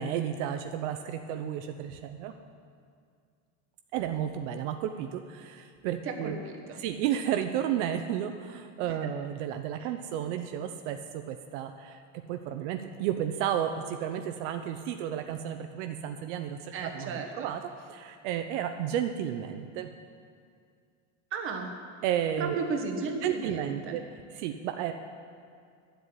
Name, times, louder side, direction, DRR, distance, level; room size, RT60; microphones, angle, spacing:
voice 1, 0.0-2.3 3.9-6.4 6.8-12.0 12.3-19.9 22.0-22.6 23.2-24.0 24.3-24.9, right 10 dB, 75° right, 7 dB, 0.8 m, -32 dB
voice 2, 6.0-6.8 9.8-9.9 16.7-17.5 21.3-21.7 22.4-24.0, right 4 dB, 35° right, 3 dB, 1.5 m, -34 dB
10.5 x 7.9 x 9.7 m, 2.2 s
cardioid pair, 160°, 37 cm